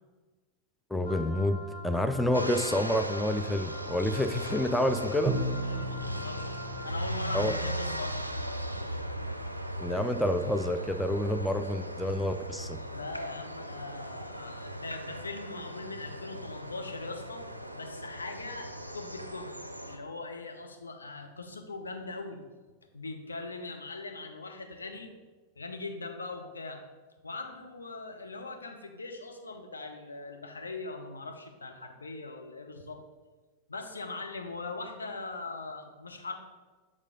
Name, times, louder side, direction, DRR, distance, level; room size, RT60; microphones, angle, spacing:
voice 1, 0.9-5.3 7.3-7.5 9.8-12.8, left 1 dB, 5° left, 7 dB, 0.4 m, -28 dB
Wind instrument woodwind instrument, 1.0-7.0, equal, 55° left, 1.4 m, -45 dB
sound 1, 2.3-20.0, equal, 90° right, 0.4 m, -38 dB
Bowed string instrument, 5.3-8.1, right 1 dB, 20° right, 1.0 m, -35 dB
voice 2, 5.6-8.3 12.9-17.5 17.7-19.5 19.9-22.4 22.9-25.1 25.6-26.8 27.2-33.0 33.7-36.3, left 3 dB, 75° left, 4 dB, 0.7 m, -41 dB
6.5 x 3.7 x 5.0 m, 1.3 s
figure-of-eight pair, 90°, 0 cm